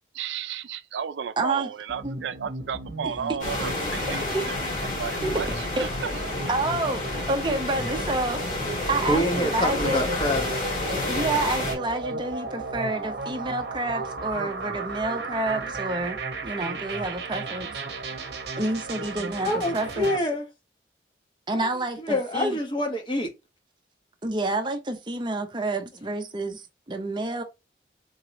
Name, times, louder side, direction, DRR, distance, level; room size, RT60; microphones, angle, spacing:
voice 1, 0.1-4.6 4.9-6.5, right 7 dB, 85° right, 0.4 m, -33 dB
voice 2, 1.4-1.7 2.0-2.1 4.3-4.4 5.2-5.3 5.8-5.9 6.5-8.4 8.9-10.1 11.0-16.2 16.4-17.7 18.6-20.1 21.5-22.6 24.2-26.6 26.9-27.4, right 2 dB, 25° right, 0.6 m, -28 dB
sound 1, 1.9-20.2, right 3 dB, 70° right, 0.8 m, -35 dB
sound 2, 3.4-11.7, left 2 dB, 45° left, 2.0 m, -30 dB
voice 3, 9.1-10.7 19.4-20.5 21.5-23.3, left 1 dB, 25° left, 1.1 m, -27 dB
3.8 x 2.9 x 3.0 m
head